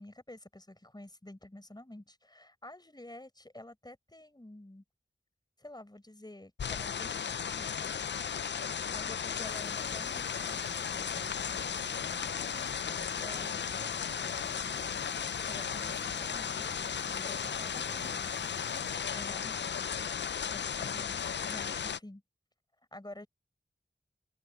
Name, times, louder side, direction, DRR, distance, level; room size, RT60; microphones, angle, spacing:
voice 1, 0.0-4.8 5.6-7.9 8.9-10.5 13.1-13.7 15.1-18.2 19.1-19.9 20.4-22.2 22.9-23.3, left 1 dB, 25° left, 4.9 m, -50 dB
sound 1, 6.6-22.0, left 7 dB, 75° left, 0.4 m, -35 dB
sound 2, 9.5-19.0, right 3 dB, 75° right, 4.6 m, -54 dB
voice 2, 12.2-14.8 17.4-18.5, right 2 dB, 35° right, 7.3 m, -55 dB
wide cardioid pair, 55°, 18 cm